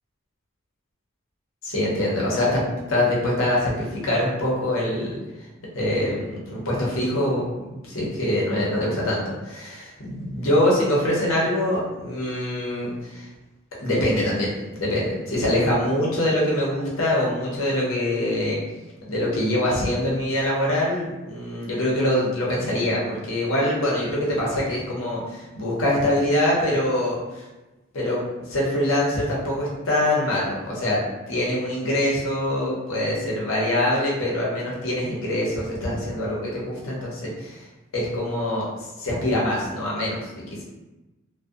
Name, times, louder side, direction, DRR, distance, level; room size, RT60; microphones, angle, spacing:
voice 1, 1.6-5.5 5.7-7.5 7.8-13.3 13.8-18.6 19.1-27.4 27.9-28.2 28.5-31.0 31.3-37.6 37.9-38.7 39.0-40.6, left 1 dB, 70° left, -5 dB, 0.8 m, -24 dB
2.6 x 2.2 x 2.4 m, 1.1 s
head